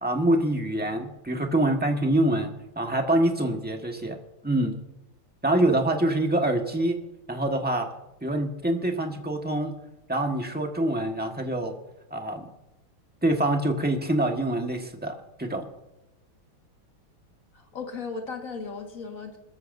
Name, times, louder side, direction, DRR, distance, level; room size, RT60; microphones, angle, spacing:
voice 1, 0.0-4.2 4.4-4.7 5.4-7.0 7.3-7.9 8.2-9.7 10.1-11.7 12.1-12.5 13.2-15.7, right 1 dB, 5° right, 2 dB, 1.1 m, -25 dB
voice 2, 17.5-19.4, left 4 dB, 40° left, 2 dB, 2.1 m, -36 dB
24.0 x 14.0 x 2.7 m, 0.93 s
omnidirectional pair, 2.3 m